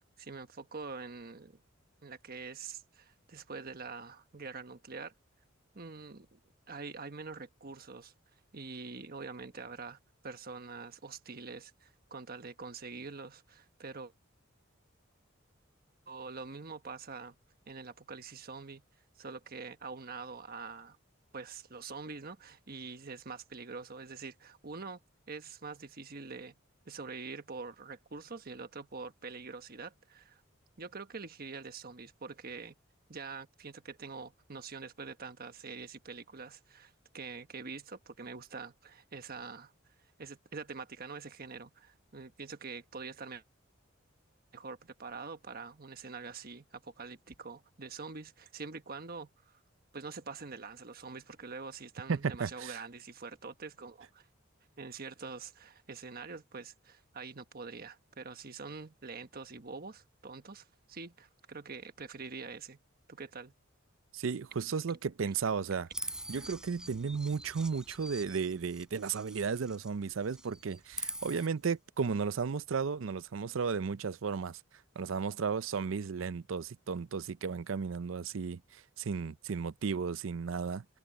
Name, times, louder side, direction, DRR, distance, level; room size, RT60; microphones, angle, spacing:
voice 1, 0.2-1.6 2.0-5.1 5.7-6.4 6.7-8.1 8.5-10.0 10.2-14.1 16.1-17.4 17.7-18.8 19.2-21.0 21.3-25.0 25.3-26.5 26.8-30.4 30.8-32.7 33.1-39.7 40.2-43.4 44.5-49.5 49.9-54.3 54.8-62.8 63.1-63.5, right 4 dB, 50° right, 1.3 m, -45 dB
voice 2, 52.1-52.8 64.1-65.9 66.3-74.6 75.0-80.8, right 5 dB, 75° right, 0.5 m, -34 dB
Chirp tweet, 65.9-69.9 70.2-71.5, right 1 dB, 5° right, 4.2 m, -44 dB
head